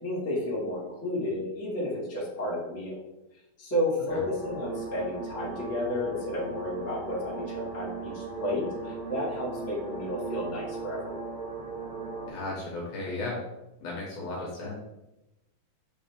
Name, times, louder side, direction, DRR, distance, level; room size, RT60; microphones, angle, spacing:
voice 1, 0.0-3.0 3.6-11.2, left 1 dB, 5° left, -7 dB, 1.1 m, -32 dB
sound 1, 4.1-12.3, right 4 dB, 80° right, 1.1 m, -38 dB
voice 2, 12.3-13.4 13.8-14.8, left 2 dB, 65° left, -3 dB, 2.0 m, -35 dB
7.4 x 3.9 x 3.6 m, 0.96 s
omnidirectional pair, 3.8 m